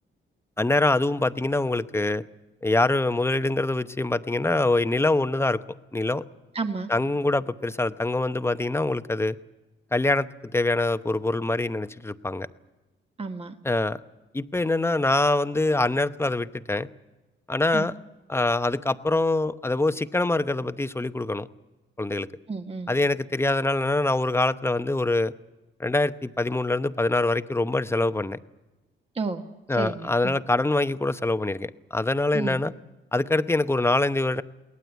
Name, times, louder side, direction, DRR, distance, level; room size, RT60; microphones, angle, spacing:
voice 1, 0.6-2.2 2.6-5.6 5.9-6.2 6.9-9.4 9.9-12.5 13.6-14.0 14.3-16.9 17.5-17.9 18.3-21.5 22.0-22.3 22.9-25.3 25.8-28.4 29.7-32.7 33.1-34.4, left 2 dB, 10° left, 11 dB, 0.8 m, -24 dB
voice 2, 6.5-6.9 13.2-13.5 17.7-17.9 22.5-22.9 29.1-29.4 29.7-30.3 32.3-32.6, right 4 dB, 30° right, 6 dB, 1.4 m, -31 dB
22.5 x 18.0 x 8.2 m, 1.1 s
cardioid pair, 80°, 21 cm